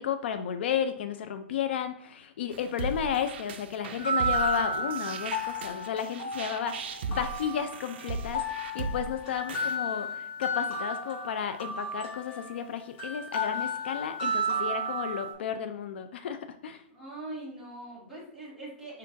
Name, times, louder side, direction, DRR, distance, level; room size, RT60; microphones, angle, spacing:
voice 1, 0.0-16.8, left 8 dB, 65° left, 9 dB, 0.4 m, -33 dB
sound 1, 2.5-9.8, right 4 dB, 65° right, 0.4 m, -38 dB
sound 2, 4.0-15.3, right 1 dB, 40° left, 1.7 m, -33 dB
voice 2, 16.9-19.0, right 2 dB, ahead, -10 dB, 1.9 m, -42 dB
5.3 x 3.8 x 2.5 m, 0.68 s
hypercardioid pair, 160°, 6 cm